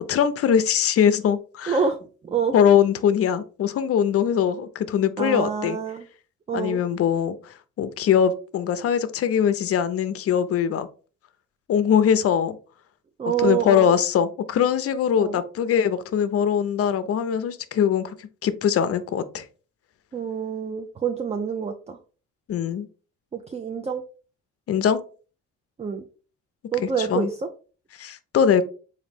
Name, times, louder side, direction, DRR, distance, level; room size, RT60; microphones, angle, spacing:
voice 1, 0.1-1.8 2.5-5.8 6.5-7.4 7.8-10.9 11.7-12.6 13.4-18.1 18.4-19.4 22.5-22.9 24.7-25.0 27.1-27.3 28.0-28.7, left 8 dB, 50° left, 13 dB, 0.5 m, -21 dB
voice 2, 1.7-2.0 2.2-2.5 5.2-6.1 6.5-6.8 13.2-13.9 15.2-15.4 20.1-22.0 23.3-24.0 25.8-26.0 26.7-27.5, right 7 dB, 20° right, 7 dB, 0.4 m, -27 dB
3.9 x 2.6 x 3.3 m, 0.37 s
cardioid pair, 90°, 30 cm